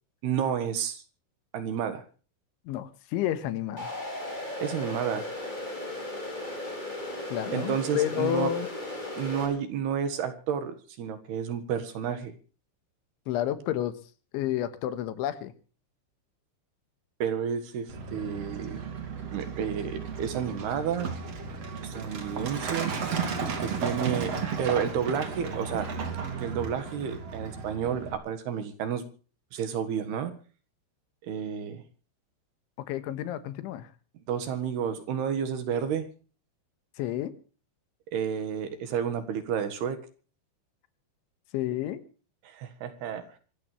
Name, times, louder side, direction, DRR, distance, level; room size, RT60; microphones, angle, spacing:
voice 1, 0.2-1.0 1.5-2.0 4.6-5.3 7.5-8.5 9.2-12.3 17.2-18.9 19.3-21.1 21.8-22.9 23.6-24.3 24.6-25.9 26.4-29.1 29.5-30.3 31.2-31.8 34.3-36.1 38.1-40.0 42.4-43.3, right 8 dB, 65° right, 9 dB, 3.3 m, -31 dB
voice 2, 2.7-3.9 7.3-8.7 13.3-14.0 14.3-15.5 32.8-33.9 37.0-37.4 41.5-42.0, left 12 dB, 80° left, 13 dB, 3.6 m, -30 dB
sound 1, 3.8-9.5, left 1 dB, 10° left, 5.6 m, -36 dB
Truck, 17.9-28.1, right 5 dB, 40° right, 3.1 m, -34 dB
25.0 x 14.5 x 3.3 m, 0.37 s
omnidirectional pair, 5.5 m